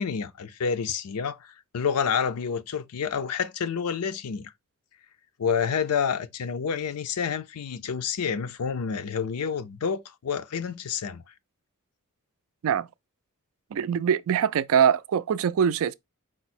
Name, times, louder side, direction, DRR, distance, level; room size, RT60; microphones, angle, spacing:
voice 1, 0.0-4.5 5.4-11.2, left 6 dB, 80° left, 0.5 m, -29 dB
voice 2, 13.7-15.9, right 8 dB, 65° right, 0.3 m, -23 dB
5.0 x 2.0 x 4.2 m
head